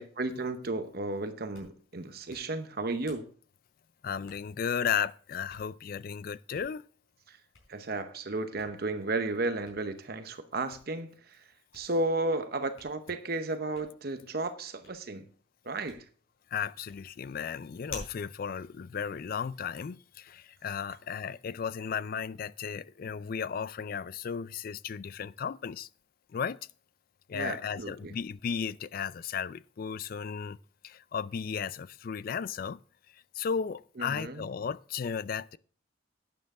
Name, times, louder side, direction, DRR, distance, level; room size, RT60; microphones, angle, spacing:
voice 1, 0.0-3.3 7.3-7.4 7.7-11.4 11.7-15.2 15.6-16.0 27.3-28.1 34.0-34.5, right 2 dB, 50° right, 0.8 m, -33 dB
Hands, 1.3-19.8, left 4 dB, 80° left, 4.7 m, -55 dB
voice 2, 4.0-6.8 16.5-25.9 26.3-26.6 27.3-30.6 30.8-32.8 33.3-35.6, left 7 dB, 45° left, 0.3 m, -35 dB
11.5 x 9.0 x 3.6 m
head